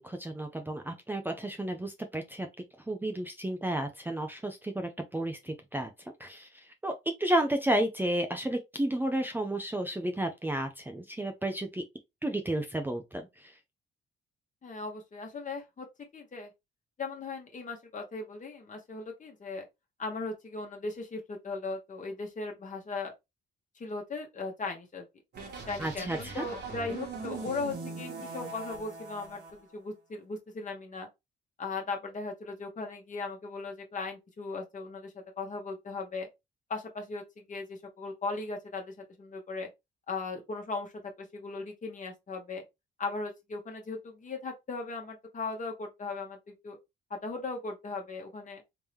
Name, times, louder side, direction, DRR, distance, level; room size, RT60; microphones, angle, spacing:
voice 1, 0.0-2.5 2.9-5.9 6.2-6.5 6.8-11.8 12.2-13.5 25.8-26.4, right 1 dB, 10° right, 0.6 m, -32 dB
voice 2, 14.6-15.9 16.1-16.5 17.0-19.6 20.0-23.1 23.7-25.0 25.7-29.4 29.7-31.1 31.6-36.3 36.7-39.7 40.1-40.9 41.2-42.6 43.0-46.8 47.1-48.6, left 3 dB, 40° left, 1.4 m, -38 dB
sound 1, 25.3-29.5, right 4 dB, 55° right, 1.6 m, -41 dB
3.7 x 2.8 x 3.3 m
cardioid pair, 90°, 20 cm